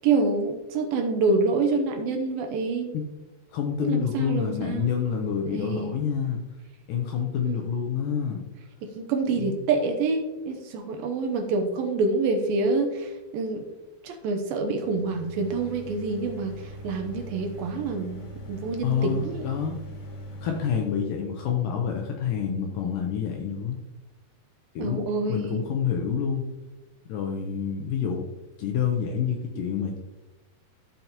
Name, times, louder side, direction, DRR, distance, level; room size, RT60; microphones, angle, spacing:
voice 1, 0.0-2.9 3.8-4.9 5.4-6.0 7.5-7.6 8.8-13.6 14.0-19.4 24.8-25.6, right 3 dB, 75° right, 4 dB, 2.4 m, -27 dB
voice 2, 3.5-6.4 6.9-8.5 9.4-9.6 18.8-19.8 20.4-23.8 24.8-25.0 25.3-26.4 27.1-28.3 28.6-30.0, left 7 dB, 80° left, 2 dB, 2.0 m, -28 dB
sound 1, 14.6-21.2, equal, 60° left, 2.5 m, -41 dB
13.5 x 5.4 x 2.9 m, 1.1 s
omnidirectional pair, 4.6 m